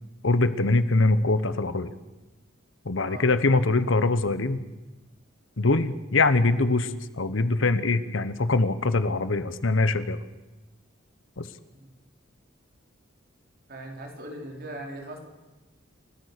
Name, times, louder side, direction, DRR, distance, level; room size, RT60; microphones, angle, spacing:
voice 1, 0.2-1.9 2.8-4.6 5.6-10.2 11.4-11.5, left 3 dB, 70° left, 13 dB, 1.1 m, -23 dB
voice 2, 13.7-15.2, right 1 dB, 50° right, 2 dB, 3.9 m, -39 dB
29.5 x 13.5 x 6.7 m, 1.1 s
head